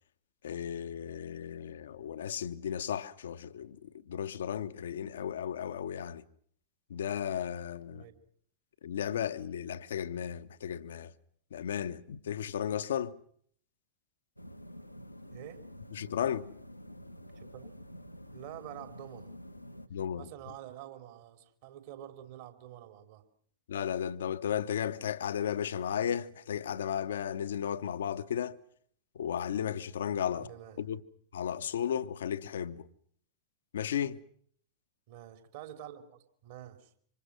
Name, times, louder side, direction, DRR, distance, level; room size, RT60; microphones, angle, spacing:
voice 1, 0.4-6.2 6.9-8.0 8.8-11.1 11.5-13.2 15.9-16.5 19.9-20.3 23.7-28.6 29.1-30.5 30.8-31.0 31.3-32.9 33.7-34.2, left 9 dB, 65° left, 1.0 m, -34 dB
sound 1, 14.4-19.9, equal, 90° left, 1.2 m, -49 dB
voice 2, 15.3-15.6 17.4-17.7 18.3-19.3 20.2-23.2 30.3-30.8 35.1-36.9, right 11 dB, 50° right, 3.4 m, -47 dB
26.5 x 26.0 x 6.2 m
figure-of-eight pair, 90°, 0 cm